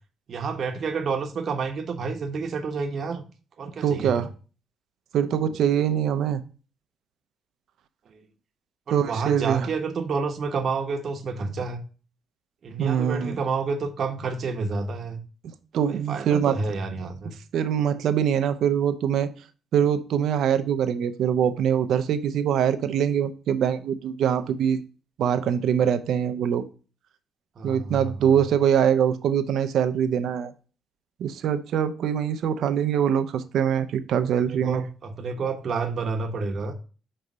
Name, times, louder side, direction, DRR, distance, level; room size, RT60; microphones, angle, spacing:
voice 1, 0.3-3.2 3.6-4.3 8.1-8.3 8.9-11.8 12.6-15.2 15.8-17.3 27.6-28.4 34.5-36.7, right 4 dB, 55° right, 4 dB, 1.1 m, -29 dB
voice 2, 3.8-4.3 5.1-6.4 8.9-9.7 12.8-13.4 15.7-16.6 17.5-19.3 19.7-24.8 25.2-26.6 27.6-30.5 31.2-34.8, right 8 dB, 75° right, 11 dB, 0.6 m, -23 dB
6.1 x 3.3 x 5.3 m, 0.36 s
cardioid pair, 90°, 0 cm